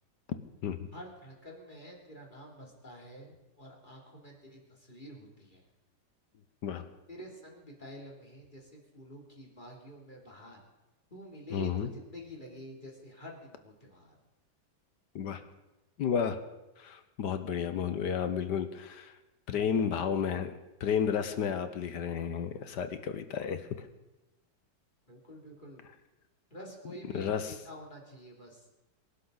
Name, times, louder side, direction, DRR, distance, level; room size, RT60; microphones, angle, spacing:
voice 1, 0.9-5.7 7.1-10.6 11.1-14.2 25.1-25.8 26.5-28.7, equal, 25° left, -1 dB, 3.1 m, -48 dB
voice 2, 11.5-11.9 15.1-15.4 16.0-16.4 16.8-19.1 19.5-20.5 20.8-23.7 27.1-27.5, left 7 dB, 65° left, 9 dB, 1.4 m, -32 dB
25.5 x 12.0 x 4.0 m, 1.0 s
omnidirectional pair, 2.1 m